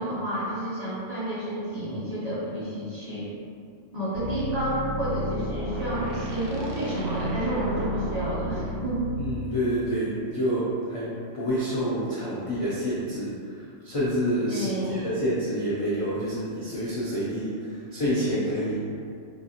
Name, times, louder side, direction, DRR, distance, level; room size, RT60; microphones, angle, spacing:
voice 1, 0.0-3.3 3.9-9.0 14.5-15.1, right 1 dB, 35° right, -10 dB, 0.8 m, -30 dB
sound 1, 4.1-9.2, equal, 70° right, 0.9 m, -32 dB
voice 2, 9.2-13.3 13.8-18.9, equal, 45° left, -9 dB, 0.4 m, -28 dB
4.0 x 2.5 x 2.8 m, 2.4 s
omnidirectional pair, 1.4 m